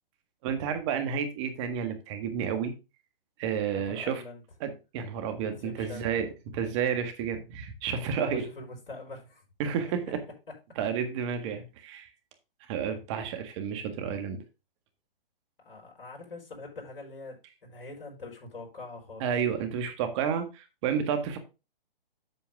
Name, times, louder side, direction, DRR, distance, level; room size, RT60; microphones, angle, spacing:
voice 1, 0.4-2.7 3.4-4.2 4.6-6.3 6.5-8.5 9.6-10.2 10.8-12.1 12.7-14.4 19.2-21.4, right 7 dB, 30° right, 7 dB, 1.7 m, -31 dB
voice 2, 3.7-4.4 5.6-6.1 8.2-9.4 9.8-9.9 15.6-19.3, left 3 dB, 70° left, -1 dB, 4.5 m, -44 dB
8.1 x 7.0 x 3.5 m, 0.28 s
hypercardioid pair, 140°, 29 cm